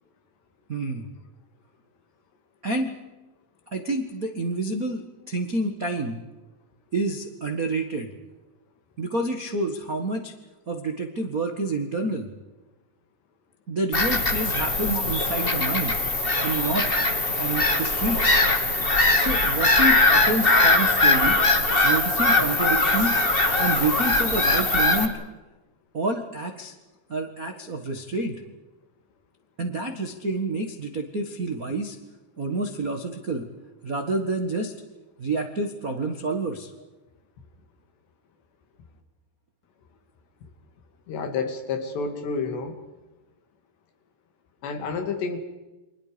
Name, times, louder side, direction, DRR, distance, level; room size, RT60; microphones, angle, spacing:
voice 1, 0.7-1.0 2.6-2.9 3.7-6.2 6.9-8.1 9.0-10.3 10.7-12.3 13.7-16.0 16.4-16.9 17.4-18.4 19.2-21.4 21.8-23.2 23.6-25.2 25.9-26.7 27.1-28.4 29.6-32.0 32.4-33.5 33.8-34.7 35.2-36.7, right 2 dB, 65° right, 5 dB, 0.8 m, -28 dB
Bird vocalization bird call bird song / Gull seagull, 13.9-25.0, left 2 dB, 35° left, 0.8 m, -21 dB
voice 2, 41.1-42.8 44.6-45.4, left 4 dB, 85° left, 6 dB, 4.6 m, -29 dB
30.0 x 25.0 x 5.2 m, 1.1 s
omnidirectional pair, 4.8 m